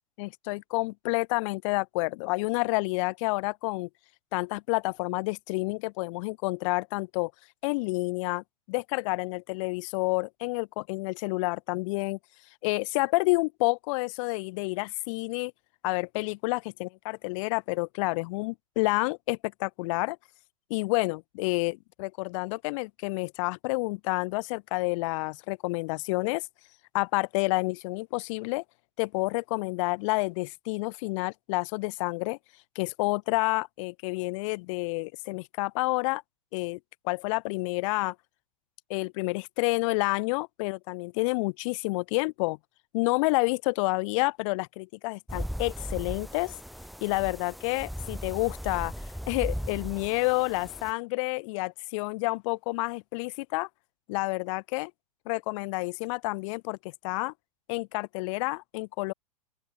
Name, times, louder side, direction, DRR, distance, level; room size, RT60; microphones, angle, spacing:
voice 1, 0.2-3.9 4.3-7.3 7.6-12.2 12.6-15.5 15.8-20.2 20.7-26.4 26.9-28.6 29.0-32.4 32.8-36.2 36.5-36.8 37.0-38.2 38.9-42.6 42.9-46.5 47.0-48.9 49.3-53.7 54.1-54.9 55.3-57.3 57.7-59.1, left 26 dB, 50° left, 3.7 m, -29 dB
sound 1, 45.3-50.9, equal, ahead, 3.9 m, -37 dB
open air
hypercardioid pair, 115°, 20 cm